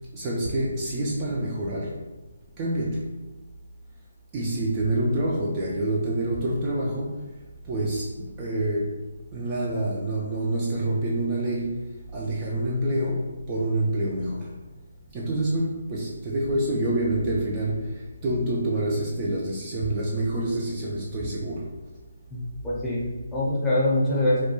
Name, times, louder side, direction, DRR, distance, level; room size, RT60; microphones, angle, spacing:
voice 1, 0.1-2.1 2.6-3.2 4.3-7.3 7.6-9.0 9.3-14.6 15.1-21.8, right 1 dB, 25° right, -5 dB, 0.4 m, -27 dB
voice 2, 22.3-24.5, left 1 dB, 10° left, -8 dB, 0.7 m, -24 dB
2.2 x 2.2 x 2.9 m, 1.1 s
figure-of-eight pair, 150°, 0 cm